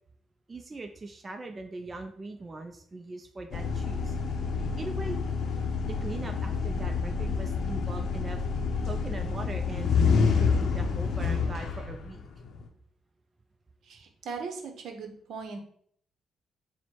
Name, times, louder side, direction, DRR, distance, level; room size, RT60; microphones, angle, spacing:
voice 1, 0.5-4.2 4.6-5.2 5.8-8.4 8.8-12.3, right 2 dB, 30° right, 5 dB, 0.4 m, -40 dB
sound 1, 3.5-12.6, left 5 dB, 65° left, 0.6 m, -28 dB
voice 2, 13.9-15.6, right 5 dB, 70° right, 4 dB, 0.7 m, -39 dB
4.4 x 2.1 x 4.3 m, 0.63 s
cardioid pair, 90°, 0 cm